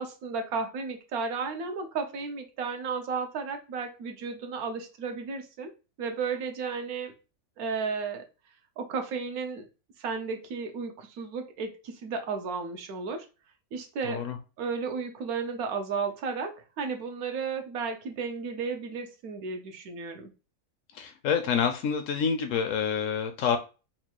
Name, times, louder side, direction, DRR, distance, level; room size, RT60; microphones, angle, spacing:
voice 1, 0.0-5.7 6.0-7.1 7.6-8.2 8.8-9.7 10.0-13.3 13.7-14.3 14.6-20.3, right 5 dB, 80° right, 5 dB, 1.2 m, -33 dB
voice 2, 14.1-14.4 20.9-23.6, left 7 dB, 70° left, 7 dB, 0.8 m, -27 dB
4.3 x 2.3 x 2.9 m, 0.31 s
omnidirectional pair, 1.6 m